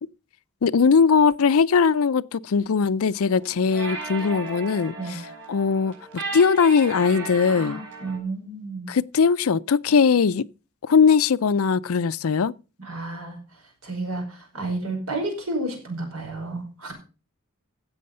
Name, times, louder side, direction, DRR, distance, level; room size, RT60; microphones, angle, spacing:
voice 1, 0.6-5.2 5.5-7.8 8.9-10.5 10.8-12.5, left 5 dB, 75° left, 0.5 m, -20 dB
sound 1, 3.2-8.2, right 3 dB, 60° right, 5.1 m, -36 dB
voice 2, 7.5-8.9 12.8-16.9, right 2 dB, 80° right, 5.6 m, -32 dB
16.0 x 6.4 x 5.4 m
head